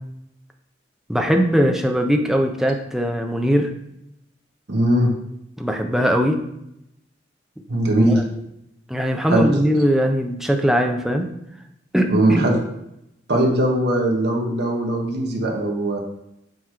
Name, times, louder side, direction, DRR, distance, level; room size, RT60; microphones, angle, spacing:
voice 1, 1.1-3.7 5.6-6.4 8.1-8.2 8.9-11.3 11.9-12.4, equal, ahead, 3 dB, 0.5 m, -20 dB
voice 2, 4.7-5.1 7.7-8.2 9.3-9.5 12.1-12.6 13.3-16.0, right 1 dB, 60° right, 0 dB, 1.1 m, -19 dB
7.8 x 3.0 x 4.8 m, 0.81 s
head